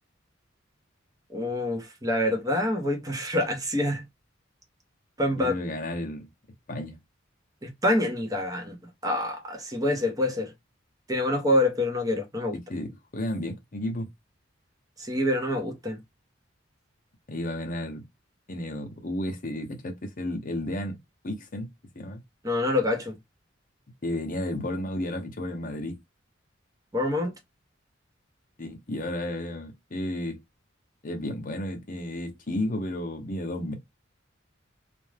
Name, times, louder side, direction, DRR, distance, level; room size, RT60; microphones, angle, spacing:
voice 1, 1.3-4.0 5.2-5.5 7.6-8.8 9.0-10.5 11.1-12.6 15.0-16.0 22.4-23.2 26.9-27.3, left 1 dB, 20° right, 0.7 m, -26 dB
voice 2, 5.3-6.3 6.7-7.0 12.7-14.1 17.3-18.0 18.5-21.0 21.2-22.2 24.0-26.0 28.6-30.4 31.0-33.8, left 1 dB, 45° left, 0.7 m, -32 dB
2.5 x 2.2 x 3.2 m
head